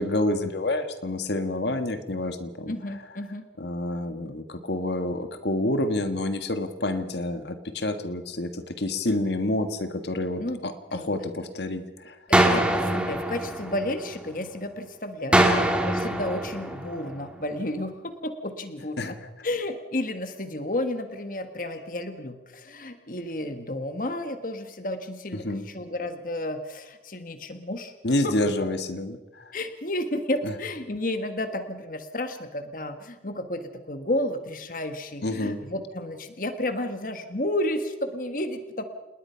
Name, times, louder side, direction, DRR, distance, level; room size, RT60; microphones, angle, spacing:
voice 1, 0.0-3.0 3.6-12.2 15.4-15.6 19.0-19.3 25.3-25.6 28.0-29.5 30.4-30.5 35.2-35.6, left 1 dB, 70° left, 8 dB, 1.7 m, -28 dB
voice 2, 2.7-3.5 10.4-10.6 10.9-11.3 12.3-27.9 28.2-28.3 28.6-28.7 29.5-38.8, left 1 dB, 45° left, 8 dB, 1.5 m, -32 dB
sound 1, 12.3-14.4 15.3-17.4, right 1 dB, 5° right, 2.5 m, -24 dB
28.5 x 20.0 x 5.8 m, 1.1 s
head